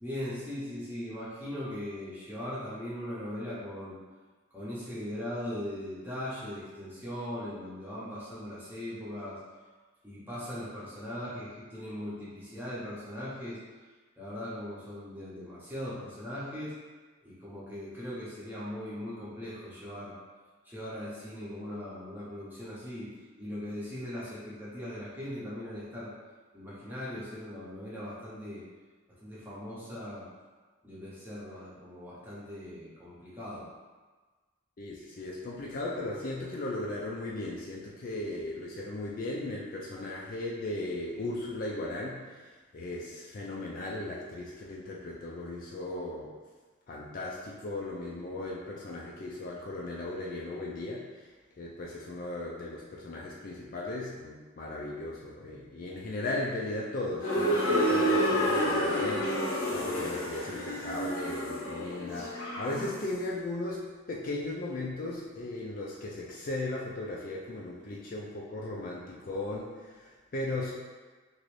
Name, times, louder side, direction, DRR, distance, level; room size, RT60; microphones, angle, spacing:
voice 1, 0.0-4.0 4.5-9.4 10.0-13.6 14.2-16.7 17.2-20.1 20.6-23.1 23.4-26.1 26.5-28.6 29.1-30.3 30.8-33.7, left 1 dB, 10° right, -9 dB, 0.8 m, -39 dB
voice 2, 34.8-42.4 42.7-46.3 46.9-51.3 51.6-70.7, left 2 dB, 40° left, -4 dB, 0.3 m, -37 dB
sound 1, 57.2-63.1, equal, 90° left, 0.7 m, -29 dB
3.0 x 2.6 x 3.1 m, 1.4 s
head